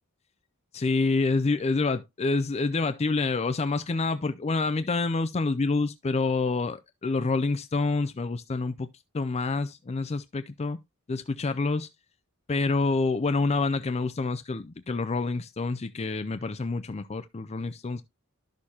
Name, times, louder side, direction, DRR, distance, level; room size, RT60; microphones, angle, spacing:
voice 1, 0.7-8.9 9.1-10.8 11.1-11.9 12.5-18.0, left 3 dB, 30° left, 0.4 m, -27 dB
11.5 x 6.4 x 2.8 m
head